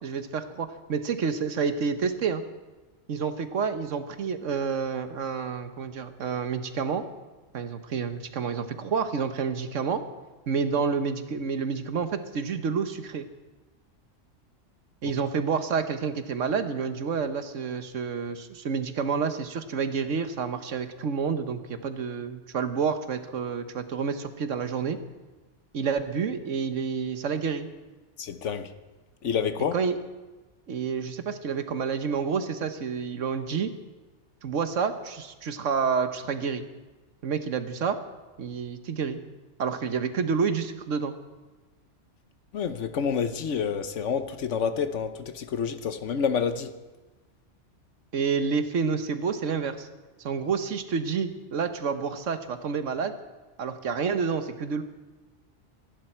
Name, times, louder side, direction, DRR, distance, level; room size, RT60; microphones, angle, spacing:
voice 1, 0.0-2.4 3.1-7.0 7.5-10.0 10.5-13.3 15.0-25.0 25.7-27.7 29.7-30.0 30.7-33.7 34.4-36.6 37.2-38.0 38.4-39.2 39.6-41.1 48.1-49.9 50.2-53.1 53.6-54.8, right 6 dB, 85° right, 1.4 m, -29 dB
voice 2, 28.2-28.7 29.2-29.8 42.5-46.8, left 6 dB, 75° left, 1.2 m, -28 dB
25.0 x 11.5 x 4.5 m
omnidirectional pair, 1.3 m